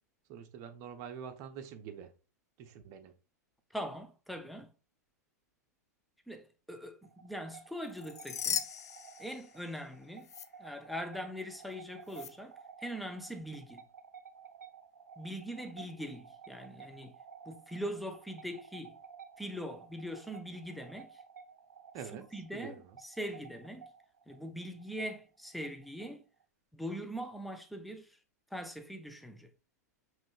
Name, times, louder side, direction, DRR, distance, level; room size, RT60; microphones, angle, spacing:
voice 1, 0.3-2.1 2.6-3.1 21.9-22.3 22.5-23.0, right 7 dB, 40° right, 0.7 m, -45 dB
voice 2, 3.7-4.7 6.3-8.6 9.2-10.3 10.6-12.5 12.8-13.8 15.2-17.2 17.5-19.0 19.4-21.2 22.3-23.9 24.3-26.2 26.7-28.1 28.5-29.5, equal, ahead, 0.5 m, -42 dB
sound 1, 7.0-26.4, right 6 dB, 80° right, 0.4 m, -54 dB
sound 2, 7.9-9.9 10.2-10.5 12.1-12.3, left 8 dB, 70° left, 0.4 m, -38 dB
5.2 x 3.2 x 2.3 m
figure-of-eight pair, 100°, 9 cm